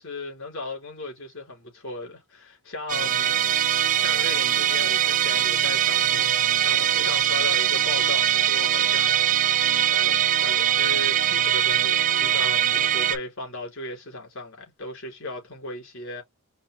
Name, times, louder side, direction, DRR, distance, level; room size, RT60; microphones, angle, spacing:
voice 1, 0.0-3.4 3.9-9.6 9.9-16.2, left 2 dB, 60° left, 3.0 m, -36 dB
Musical instrument, 2.9-13.2, right 10 dB, 35° right, 0.3 m, -22 dB
5.3 x 2.1 x 3.0 m
head